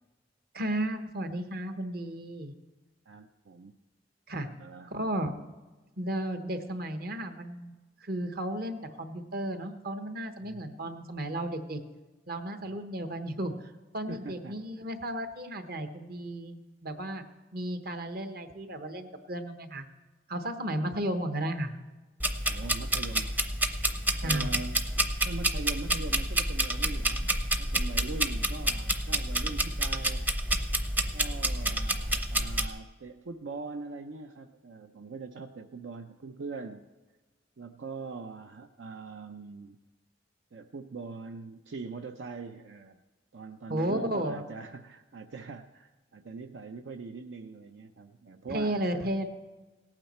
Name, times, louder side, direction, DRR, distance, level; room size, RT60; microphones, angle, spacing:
voice 1, 0.5-2.5 4.3-4.5 4.9-5.3 6.0-7.7 8.0-11.8 12.3-17.2 17.5-19.8 20.3-21.7 24.2-24.5 43.7-44.4 48.5-49.3, right 1 dB, 55° right, 8 dB, 1.1 m, -34 dB
voice 2, 3.1-3.7 4.6-4.9 10.4-10.7 12.6-13.1 14.1-14.9 22.5-23.5 24.2-24.9 25.2-30.3 31.1-36.8 37.6-39.8 40.5-43.0 43.3-48.9, right 4 dB, 80° right, 6 dB, 0.5 m, -42 dB
sound 1, 22.2-32.7, right 1 dB, 10° right, 0.6 m, -29 dB
17.5 x 8.9 x 4.3 m, 1.2 s
head